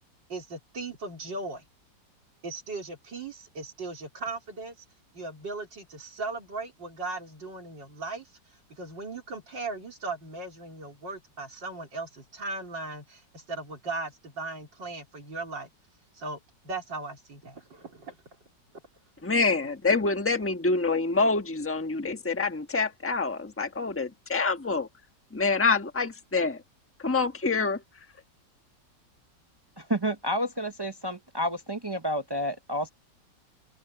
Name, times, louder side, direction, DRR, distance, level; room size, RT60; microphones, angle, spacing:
voice 1, 0.3-1.6 2.4-4.8 5.1-15.7 16.1-16.4 16.6-18.1, right 3 dB, 90° right, 4.8 m, -38 dB
voice 2, 19.2-24.9 25.3-26.6 27.0-27.8, left 4 dB, 10° left, 1.2 m, -26 dB
voice 3, 29.8-32.9, equal, 40° right, 0.3 m, -30 dB
open air
omnidirectional pair, 1.9 m